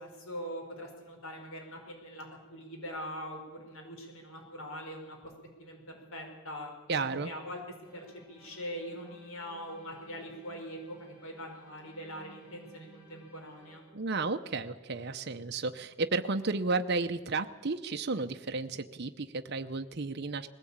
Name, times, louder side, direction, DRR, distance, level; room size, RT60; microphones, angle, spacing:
voice 1, 0.0-5.3 5.6-6.7 7.0-7.6 7.9-13.8, equal, 70° left, 3 dB, 5.1 m, -42 dB
voice 2, 6.9-7.3 13.9-20.5, right 3 dB, 50° right, 7 dB, 0.7 m, -33 dB
sound 1, 7.8-13.8, right 3 dB, 20° left, 6.0 m, -58 dB
20.5 x 16.5 x 8.8 m, 1.2 s
head